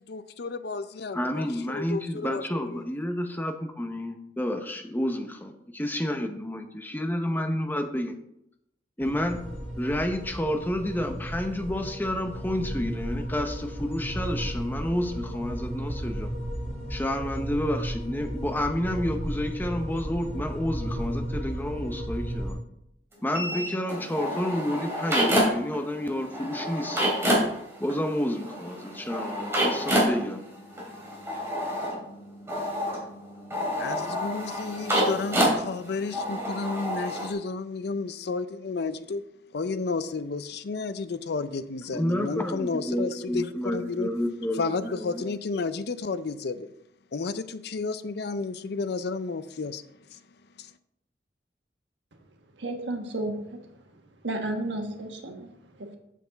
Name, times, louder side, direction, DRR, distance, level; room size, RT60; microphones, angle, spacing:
voice 1, 0.0-2.8 33.8-39.2 39.5-44.1 44.6-46.7 47.1-49.8 50.1-50.2 50.6-50.7, left 4 dB, 65° left, 0.5 m, -32 dB
voice 2, 1.1-8.1 9.0-9.4 9.8-16.3 16.9-22.6 23.2-27.1 27.8-30.4 41.9-45.3, left 1 dB, 10° left, 0.8 m, -30 dB
sound 1, 9.0-22.5, equal, 40° right, 3.3 m, -34 dB
sound 2, 23.3-25.8 26.0-37.3, equal, 15° right, 2.8 m, -28 dB
voice 3, 52.6-53.3 54.2-55.5 55.8-56.0, right 2 dB, 90° right, 1.4 m, -32 dB
7.9 x 7.4 x 4.0 m
head